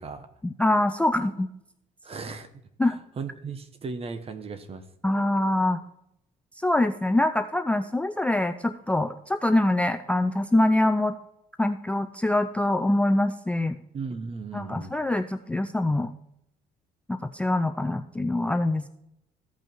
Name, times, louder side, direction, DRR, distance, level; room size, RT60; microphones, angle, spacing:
voice 1, 0.4-1.5 2.8-3.0 5.0-5.8 6.6-11.2 11.6-13.8 14.5-16.1 17.1-18.9, left 1 dB, 5° left, 7 dB, 0.4 m, -24 dB
voice 2, 2.0-2.5 2.8-4.8 13.9-14.9, right 4 dB, 35° right, 10 dB, 1.2 m, -36 dB
14.5 x 5.6 x 4.5 m, 0.81 s
cardioid pair, 110°, 17 cm